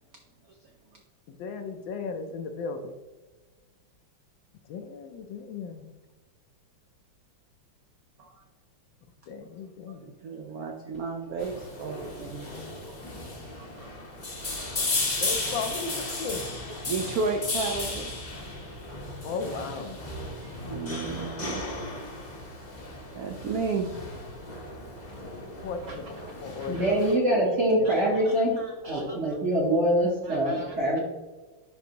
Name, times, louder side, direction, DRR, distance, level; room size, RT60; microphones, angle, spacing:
voice 1, 1.3-2.9 4.7-5.9 9.3-10.1 15.2-16.6 19.2-20.0 25.6-26.1 26.4-27.0 27.8-28.2, left 4 dB, 75° left, 7 dB, 1.2 m, -36 dB
voice 2, 10.0-12.5 12.9-13.1 13.4-13.9 14.5-15.0 15.3-15.5 16.1-16.2 16.9-18.1 19.5-19.8 20.2-21.6 23.1-24.0 25.9-26.0 26.6-27.1 27.8-28.0 28.2-29.4 30.2-31.0, right 4 dB, 85° right, 3 dB, 0.8 m, -35 dB
sound 1, 11.4-27.2, left 2 dB, 35° left, 0.7 m, -35 dB
voice 3, 26.7-31.0, right 1 dB, 50° right, -2 dB, 0.9 m, -25 dB
10.0 x 3.4 x 2.8 m, 1.3 s
omnidirectional pair, 2.3 m